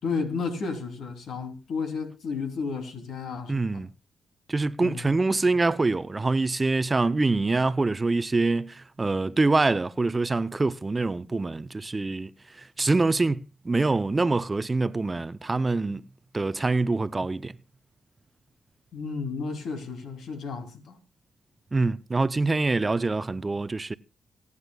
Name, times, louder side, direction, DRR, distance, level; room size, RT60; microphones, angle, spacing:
voice 1, 0.0-3.8 4.8-5.1 18.9-20.9, left 4 dB, 70° left, 3.2 m, -32 dB
voice 2, 3.5-3.9 4.5-12.3 12.8-16.0 16.3-17.5 21.7-23.9, right 3 dB, 25° right, 0.6 m, -25 dB
26.0 x 9.7 x 2.3 m
cardioid pair, 65°, 0 cm